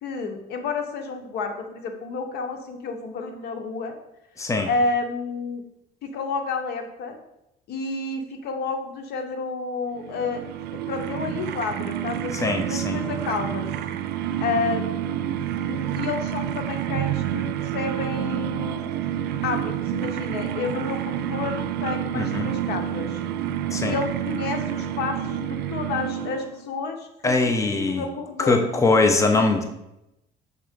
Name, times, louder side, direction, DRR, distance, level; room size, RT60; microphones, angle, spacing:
voice 1, 0.0-4.0 4.7-5.6 6.0-7.2 7.7-10.4 10.7-13.7 14.4-14.9 15.6-17.5 17.7-18.8 19.4-23.2 23.9-28.7, left 4 dB, 75° left, 5 dB, 1.0 m, -30 dB
voice 2, 4.4-4.7 12.3-13.0 22.1-22.5 23.7-23.9 27.2-28.1 28.4-29.6, left 3 dB, 20° left, 5 dB, 0.8 m, -22 dB
sound 1, 10.0-26.7, right 10 dB, 80° right, 0.5 m, -29 dB
6.7 x 3.7 x 5.2 m, 0.86 s
cardioid pair, 110°, 17 cm